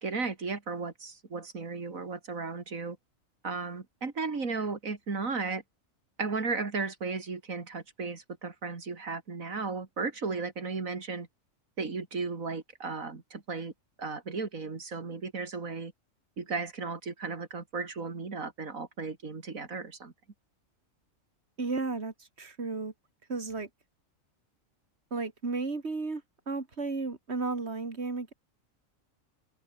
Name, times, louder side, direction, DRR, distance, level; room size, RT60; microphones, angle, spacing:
voice 1, 0.0-3.0 3.4-5.6 6.2-11.3 11.8-13.7 14.0-15.9 16.4-20.1, right 4 dB, 80° right, 3.1 m, -35 dB
voice 2, 21.6-22.9 23.3-23.7 25.1-26.2 26.5-28.3, right 3 dB, 50° right, 3.2 m, -33 dB
omnidirectional pair, 1.4 m